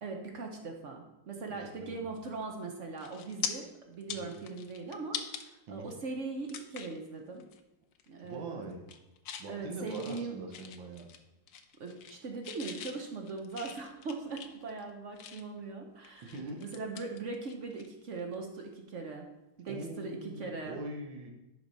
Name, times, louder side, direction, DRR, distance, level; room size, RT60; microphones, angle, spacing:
voice 1, 0.0-7.4 8.1-8.7 9.5-10.4 11.8-19.3 19.6-20.8, right 4 dB, 50° right, 2 dB, 1.0 m, -40 dB
voice 2, 1.5-2.0 4.1-4.3 5.7-5.9 8.2-8.8 9.4-11.1 16.2-16.6 19.7-21.3, right 2 dB, 80° right, 1 dB, 1.8 m, -43 dB
sound 1, 2.4-2.6 3.0-3.5 3.9-5.4 5.9-6.0 6.5-7.0 7.4-7.6 7.9-8.3 8.7-9.5 9.9-11.2 11.5-12.2 12.4-15.6 16.0-17.9 18.1-18.3 20.2-20.4, left 8 dB, 80° left, 1.4 m, -42 dB
10.5 x 4.9 x 4.0 m, 0.97 s
omnidirectional pair, 2.1 m